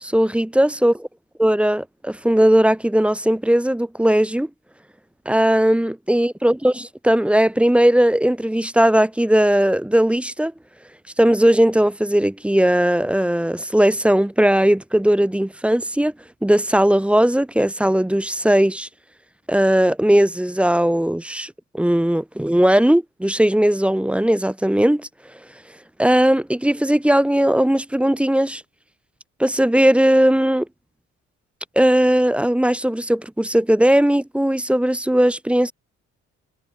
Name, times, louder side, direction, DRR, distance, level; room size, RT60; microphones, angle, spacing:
voice 1, 0.0-0.9 1.4-4.5 5.3-10.5 11.2-16.1 16.4-18.9 19.5-25.1 26.0-28.6 29.4-30.7 31.8-35.7, right 1 dB, 5° right, 0.5 m, -18 dB
cardioid pair, 90°, 30 cm